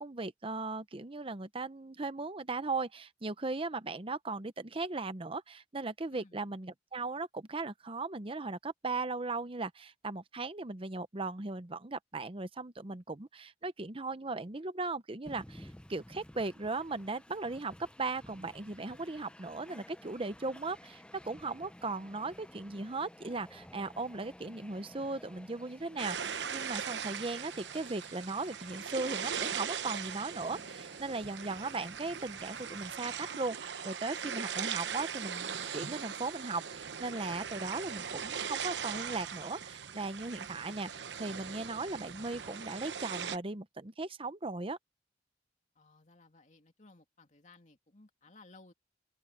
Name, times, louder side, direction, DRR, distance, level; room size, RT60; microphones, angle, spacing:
voice 1, 0.0-44.8, right 3 dB, 30° right, 0.9 m, -38 dB
voice 2, 6.1-6.5 45.7-48.7, left 2 dB, 45° left, 2.6 m, -59 dB
Train, 15.3-35.3, left 1 dB, 5° left, 0.7 m, -55 dB
sound 1, 26.0-43.4, right 7 dB, 80° right, 1.0 m, -40 dB
open air
head